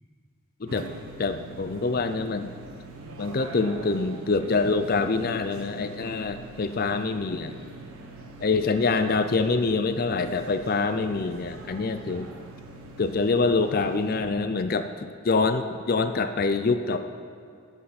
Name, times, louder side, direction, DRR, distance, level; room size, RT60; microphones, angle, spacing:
sound 1, 0.7-14.3, right 2 dB, 90° right, 1.5 m, -43 dB
voice 1, 1.2-2.5 3.2-7.6 8.4-12.3 13.0-17.0, left 3 dB, 45° left, 9 dB, 0.5 m, -25 dB
18.5 x 7.7 x 4.2 m, 2.4 s
head